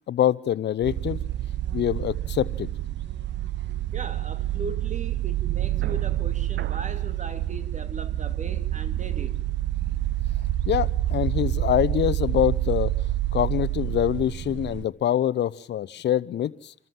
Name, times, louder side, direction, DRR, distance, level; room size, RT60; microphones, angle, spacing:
voice 1, 0.1-1.2 1.7-2.7 10.7-12.9 13.3-16.7, left 11 dB, 60° left, 0.8 m, -25 dB
sound 1, 0.8-14.8, right 13 dB, 60° right, 0.8 m, -28 dB
voice 2, 3.9-9.4, right 3 dB, 40° right, 2.5 m, -38 dB
28.0 x 13.5 x 7.6 m
cardioid pair, 90°, 20 cm